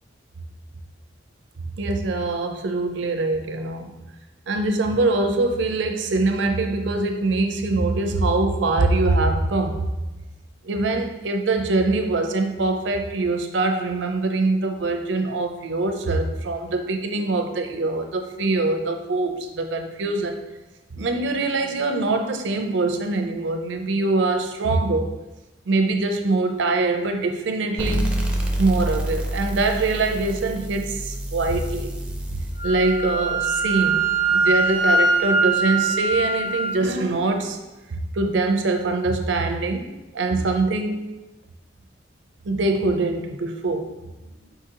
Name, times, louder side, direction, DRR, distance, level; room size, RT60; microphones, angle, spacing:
voice 1, 1.8-4.0 4.5-9.9 10.6-20.4 20.9-25.1 25.7-28.2 28.6-31.9 32.3-34.0 34.3-37.6 37.9-41.1 42.5-43.9, right 2 dB, 75° right, 5 dB, 0.5 m, -23 dB
sound 1, 27.8-35.1, right 1 dB, 5° right, 0.4 m, -29 dB
Wind instrument woodwind instrument, 32.6-36.8, right 3 dB, 45° left, 0.6 m, -22 dB
4.9 x 3.8 x 2.8 m, 1.1 s
head